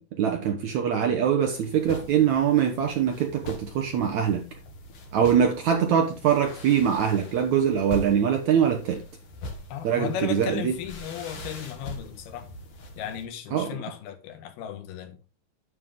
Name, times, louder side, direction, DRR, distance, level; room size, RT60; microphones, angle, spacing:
voice 1, 0.1-4.5 5.1-9.0 9.8-10.7 13.5-13.8, right 8 dB, 75° right, 1.8 m, -23 dB
sound 1, 1.4-13.2, left 1 dB, 50° left, 1.7 m, -42 dB
voice 2, 9.7-12.5 13.0-15.2, left 9 dB, 75° left, 3.2 m, -35 dB
9.6 x 7.7 x 3.7 m
omnidirectional pair, 4.7 m